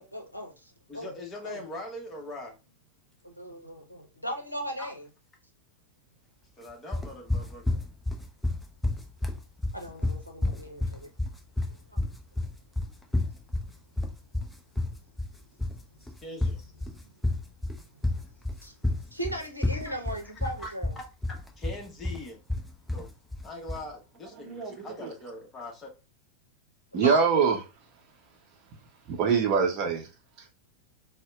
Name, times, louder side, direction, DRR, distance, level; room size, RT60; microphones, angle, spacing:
voice 1, 0.0-1.1 1.4-1.6 3.2-5.0 9.7-11.1 11.9-12.0 16.0-16.1 17.0-17.1 18.6-18.8 19.1-21.0 26.9-27.3, equal, 90° left, 0.7 m, -37 dB
voice 2, 0.9-2.5 4.8-4.9 6.6-7.8 16.2-16.9 19.7-19.9 20.2-22.4 22.9-23.1 23.4-25.9, left 1 dB, 20° left, 1.0 m, -42 dB
sound 1, 6.9-23.9, left 2 dB, 5° left, 0.6 m, -30 dB
voice 3, 24.4-25.1 26.9-27.6 29.1-30.1, right 6 dB, 35° right, 0.6 m, -24 dB
4.0 x 2.1 x 2.3 m
figure-of-eight pair, 90°, 0 cm